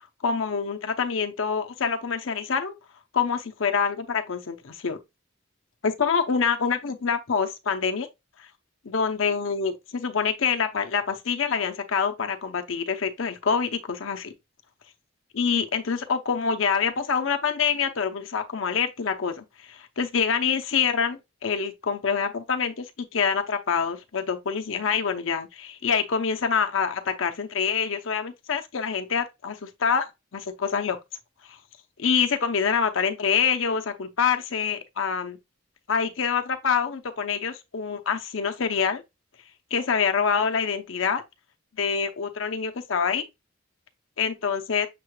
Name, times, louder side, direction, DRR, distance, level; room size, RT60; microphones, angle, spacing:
voice 1, 0.2-2.7 3.1-5.0 5.8-8.1 8.8-14.3 15.3-30.1 30.3-31.0 32.0-35.4 35.9-39.0 39.7-41.2 41.8-43.2 44.2-44.9, left 6 dB, 85° left, 0.7 m, -26 dB
6.7 x 3.2 x 2.2 m
head